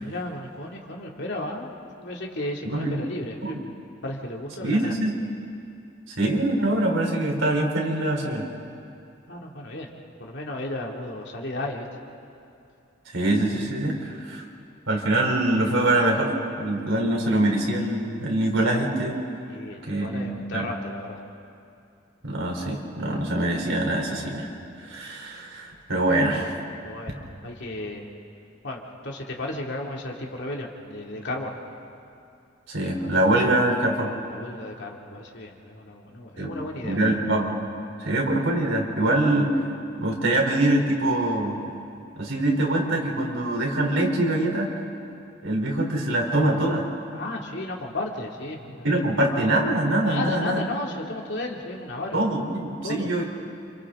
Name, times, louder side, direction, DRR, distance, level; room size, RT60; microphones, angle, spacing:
voice 1, 0.0-1.7 2.0-3.6 4.0-5.0 9.3-9.9 10.2-11.9 19.5-21.2 23.2-23.3 26.3-26.5 26.8-28.1 28.6-31.5 34.3-37.2 47.1-49.0 50.1-52.2 52.8-53.2, left 2 dB, 60° left, 0 dB, 2.6 m, -34 dB
voice 2, 4.6-5.1 6.2-8.5 13.1-14.4 14.9-16.3 16.6-19.2 19.9-20.7 22.2-24.5 24.8-26.6 32.7-34.1 36.4-36.5 36.8-37.5 38.0-39.5 40.0-41.5 42.2-44.7 45.4-46.9 48.8-50.6 52.1-53.2, right 1 dB, 75° right, 0 dB, 3.8 m, -24 dB
29.5 x 27.5 x 3.8 m, 2.6 s
head